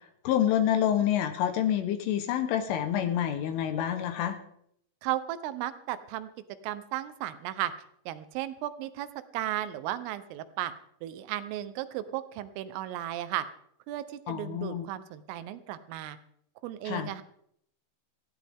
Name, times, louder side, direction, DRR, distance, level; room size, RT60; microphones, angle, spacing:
voice 1, 0.3-4.4 14.3-14.9 16.9-17.1, left 10 dB, 80° left, 7 dB, 3.7 m, -27 dB
voice 2, 5.0-6.3 6.6-7.7 8.1-9.1 9.3-10.7 11.0-13.5 13.9-16.2 16.6-17.2, right 13 dB, 85° right, 12 dB, 3.7 m, -35 dB
19.0 x 15.5 x 3.7 m, 0.68 s
omnidirectional pair, 5.7 m